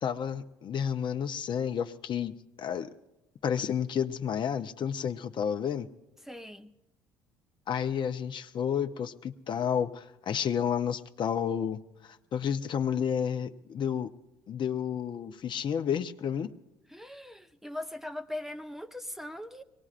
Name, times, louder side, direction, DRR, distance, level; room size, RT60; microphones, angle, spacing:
voice 1, 0.0-2.3 2.6-2.9 3.4-5.9 7.7-14.1 14.5-16.5, left 8 dB, 50° left, 0.7 m, -31 dB
voice 2, 6.2-6.7 16.9-19.6, left 1 dB, 5° right, 0.7 m, -40 dB
23.5 x 19.0 x 2.5 m
hypercardioid pair, 65°, 11 cm